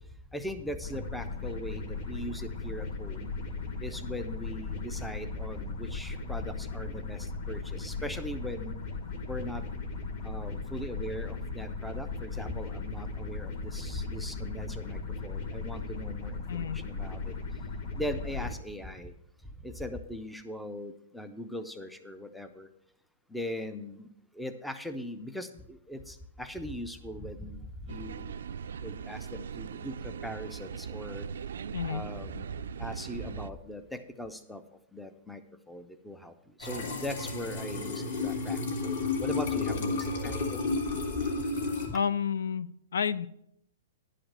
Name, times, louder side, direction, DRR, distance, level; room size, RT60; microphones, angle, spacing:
voice 1, 0.3-3.3 3.8-8.8 9.3-9.6 10.2-17.3 18.0-19.1 19.6-22.7 23.3-24.1 24.4-28.4 28.8-31.3 31.9-32.5 32.8-34.6 34.9-35.4 35.7-36.3 36.6-40.7 41.9-42.0, equal, ahead, 9 dB, 0.4 m, -40 dB
sound 1, 0.8-18.5, left 4 dB, 40° left, 1.5 m, -37 dB
voice 2, 16.5-16.8 31.7-32.0 41.9-43.3, left 7 dB, 90° left, 17 dB, 0.5 m, -30 dB
sound 2, 27.9-33.5, right 7 dB, 75° right, 0.4 m, -40 dB
sound 3, 36.6-41.9, left 3 dB, 60° left, 2.6 m, -32 dB
10.5 x 5.0 x 7.4 m, 0.74 s
hypercardioid pair, 175°, 0 cm